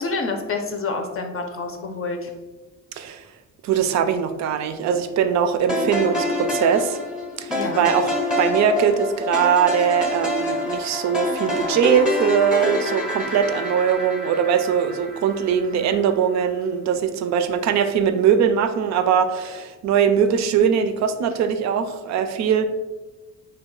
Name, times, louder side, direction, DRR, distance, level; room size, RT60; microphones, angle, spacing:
voice 1, 0.0-2.3 7.5-7.8 15.7-15.8 20.6-20.7, left 3 dB, 45° left, 4 dB, 0.5 m, -28 dB
voice 2, 3.6-7.0 7.4-22.6, right 7 dB, 65° right, 9 dB, 0.4 m, -21 dB
sound 1, 5.7-15.9, left 1 dB, 5° right, 0.6 m, -27 dB
3.2 x 2.2 x 3.7 m, 1.1 s
cardioid pair, 90°, 30 cm